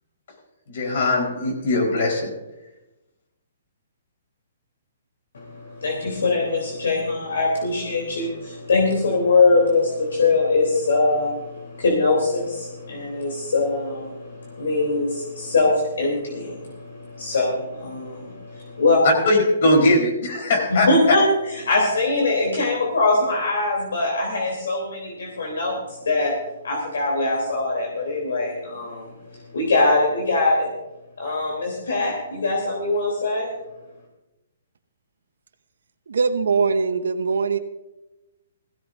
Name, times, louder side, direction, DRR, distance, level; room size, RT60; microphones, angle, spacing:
voice 1, 0.7-2.3 19.0-20.9, left 1 dB, 60° left, 1 dB, 4.4 m, -20 dB
voice 2, 5.3-19.2 20.9-25.8 26.0-26.3 26.6-30.7 31.2-33.5, left 3 dB, 80° left, -1 dB, 3.4 m, -22 dB
voice 3, 36.1-37.6, right 5 dB, 75° right, 7 dB, 0.9 m, -21 dB
17.0 x 15.5 x 2.7 m, 0.99 s
hypercardioid pair, 140°, 0 cm